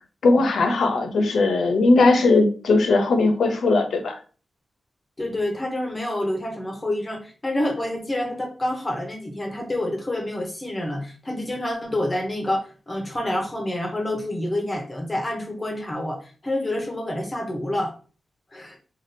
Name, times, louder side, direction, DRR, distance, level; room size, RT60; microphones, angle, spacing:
voice 1, 0.2-4.2, left 3 dB, 80° left, 6 dB, 0.6 m, -19 dB
voice 2, 5.2-17.9 18.5-18.8, left 1 dB, 20° left, 1 dB, 0.6 m, -28 dB
3.4 x 2.3 x 2.6 m, 0.38 s
wide cardioid pair, 165°, 0 cm